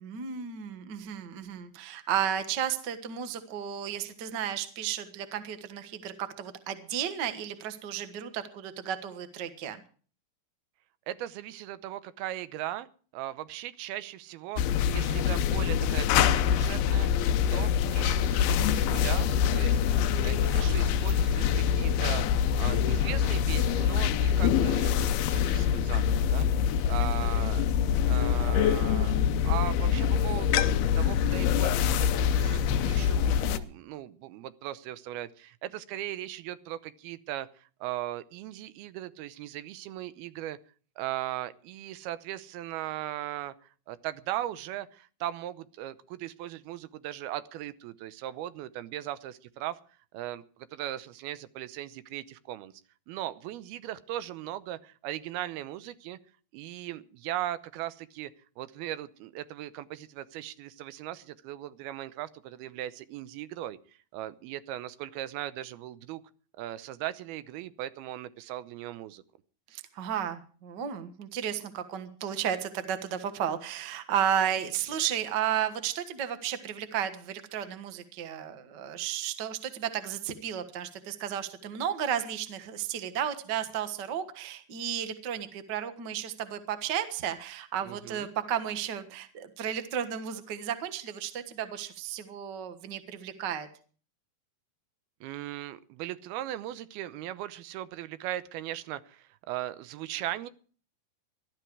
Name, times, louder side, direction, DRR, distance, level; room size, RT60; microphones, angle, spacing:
voice 1, 0.0-9.8 27.0-27.1 69.7-93.7, right 9 dB, 70° right, 10 dB, 1.0 m, -33 dB
voice 2, 11.1-12.9 13.1-17.2 17.5-19.3 19.5-19.8 20.2-22.2 22.6-27.6 28.1-29.1 29.4-40.6 41.0-43.5 43.9-49.8 50.1-52.7 53.1-56.2 56.5-58.3 58.6-66.2 66.6-69.2 87.8-88.3 95.2-100.5, right 13 dB, 90° right, 14 dB, 2.8 m, -38 dB
sound 1, 14.6-33.6, left 8 dB, 85° left, 2.8 m, -25 dB
18.0 x 12.5 x 4.7 m, 0.42 s
omnidirectional pair, 4.3 m